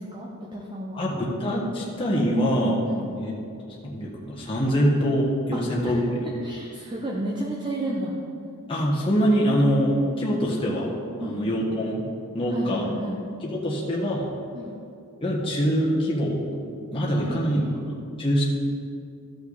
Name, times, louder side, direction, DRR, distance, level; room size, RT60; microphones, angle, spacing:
voice 1, 0.0-1.1 2.8-3.1 5.5-6.0 6.4-8.1 11.2-11.5 12.5-13.2 14.5-14.8 17.1-17.7, right 1 dB, 20° right, -3 dB, 0.8 m, -33 dB
voice 2, 0.9-2.8 3.1-3.3 3.8-6.0 8.7-10.9 11.2-12.0 12.3-12.9 13.4-14.3 15.2-16.4 16.9-17.6 17.9-18.4, equal, 25° left, -5 dB, 1.3 m, -24 dB
14.0 x 5.8 x 4.0 m, 2.5 s
head